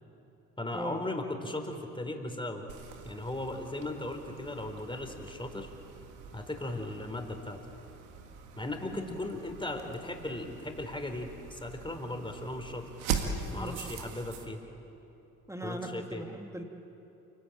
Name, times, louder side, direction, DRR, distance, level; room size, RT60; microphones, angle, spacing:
voice 1, 0.6-2.7 3.0-5.7 6.3-7.6 8.6-12.9 13.5-14.6 15.6-16.2, left 1 dB, 10° left, 4 dB, 4.4 m, -37 dB
sound 1, 2.7-14.5, right 6 dB, 85° right, 2.0 m, -41 dB
voice 2, 15.5-16.6, right 1 dB, 5° right, 3 dB, 2.8 m, -39 dB
28.5 x 18.0 x 8.9 m, 3.0 s
hypercardioid pair, 50°, 42 cm